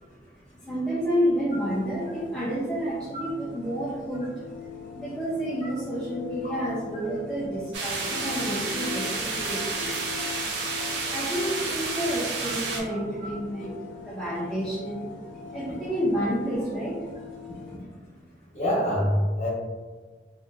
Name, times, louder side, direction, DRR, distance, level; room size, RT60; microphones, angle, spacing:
voice 1, 0.1-4.4 4.9-10.0 10.8-15.0 15.5-17.1 18.1-18.2, equal, 5° left, -9 dB, 0.4 m, -30 dB
sound 1, 1.5-17.8, left 7 dB, 80° left, 0.3 m, -42 dB
sound 2, 7.7-12.8, right 4 dB, 80° right, 0.5 m, -30 dB
voice 2, 18.5-19.5, equal, 35° left, -6 dB, 0.9 m, -25 dB
2.7 x 2.7 x 2.4 m, 1.4 s
head